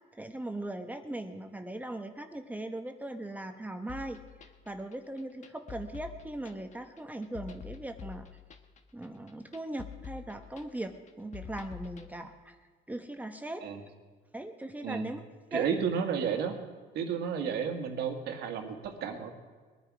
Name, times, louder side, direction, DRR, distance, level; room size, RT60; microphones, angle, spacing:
voice 1, 0.1-4.2 4.6-8.3 8.9-12.6 12.9-13.6 14.3-15.2 15.5-15.7, right 1 dB, 10° right, 6 dB, 1.0 m, -39 dB
sound 1, 3.9-12.1, left 8 dB, 45° left, 1.3 m, -47 dB
voice 2, 15.5-16.6 16.9-19.3, right 7 dB, 75° right, 5 dB, 1.9 m, -32 dB
21.5 x 9.8 x 4.9 m, 1.5 s
cardioid pair, 110°, 17 cm